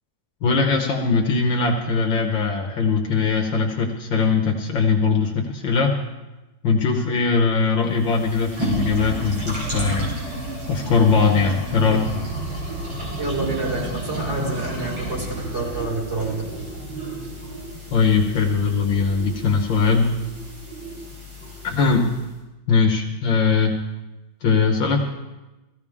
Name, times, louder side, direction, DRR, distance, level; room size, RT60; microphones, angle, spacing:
voice 1, 0.4-6.0 6.6-10.1 10.7-12.1 17.9-20.2 21.6-22.2 22.7-23.7 24.4-25.0, left 4 dB, 65° left, 2 dB, 1.8 m, -20 dB
sound 1, 7.9-22.3, right 1 dB, 80° right, 4.8 m, -31 dB
voice 2, 13.2-16.4, right 2 dB, 30° right, -6 dB, 5.1 m, -28 dB
16.5 x 15.0 x 3.6 m, 1.1 s
omnidirectional pair, 2.3 m